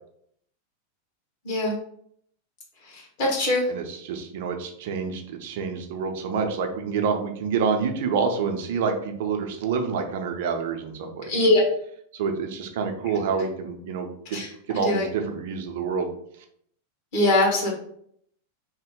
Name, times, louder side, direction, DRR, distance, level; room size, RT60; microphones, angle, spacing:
voice 1, 2.9-3.7 11.3-11.6 14.3-14.5 14.8-15.1 17.1-17.7, left 2 dB, 50° left, -2 dB, 1.2 m, -22 dB
voice 2, 3.7-11.4 12.1-14.4 14.7-16.1, right 5 dB, 55° right, 5 dB, 0.5 m, -27 dB
2.9 x 2.2 x 3.6 m, 0.68 s
figure-of-eight pair, 90°, 0 cm